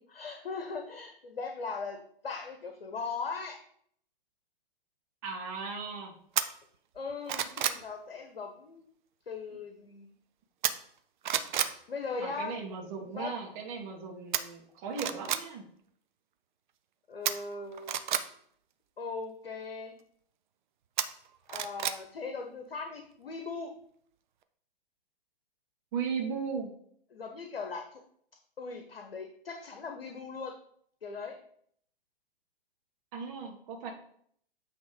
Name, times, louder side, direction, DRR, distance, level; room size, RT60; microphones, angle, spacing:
voice 1, 0.1-3.6 6.9-8.8 9.3-10.1 11.9-13.4 17.1-18.1 19.0-19.9 21.5-23.7 27.1-28.0 28.6-30.6 31.0-31.4, left 4 dB, 70° left, 5 dB, 1.0 m, -39 dB
voice 2, 5.2-6.1 12.2-15.6 25.9-26.7 33.1-33.9, right 5 dB, 35° right, 1 dB, 1.6 m, -37 dB
sound 1, 6.4-6.5 7.0-7.8 10.6-11.0 11.2-11.7 14.3-14.4 14.9-15.4 17.3-18.2 21.0-22.0 22.4-22.5, right 9 dB, 55° right, 0.6 m, -30 dB
8.2 x 3.3 x 5.0 m, 0.64 s
figure-of-eight pair, 110°, 29 cm